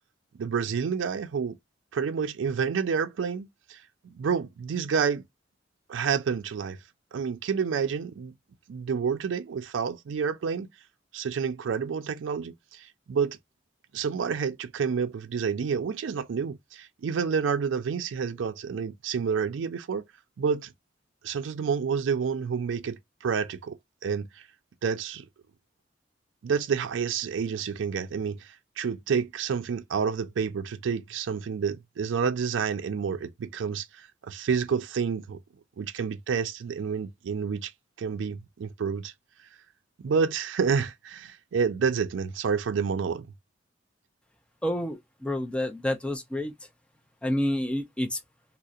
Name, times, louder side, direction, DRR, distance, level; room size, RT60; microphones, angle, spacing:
voice 1, 0.4-1.6 1.9-3.8 4.0-5.2 5.9-6.8 7.1-8.3 8.7-10.7 11.1-13.4 13.9-20.0 20.4-20.7 21.2-23.0 23.2-24.3 24.8-25.3 26.4-28.5 28.8-35.4 35.8-37.7 38.0-39.1 40.0-43.2, right 6 dB, 85° right, 0.4 m, -29 dB
voice 2, 44.6-46.5 47.2-48.2, left 1 dB, 5° left, 0.3 m, -29 dB
2.6 x 2.0 x 2.3 m
head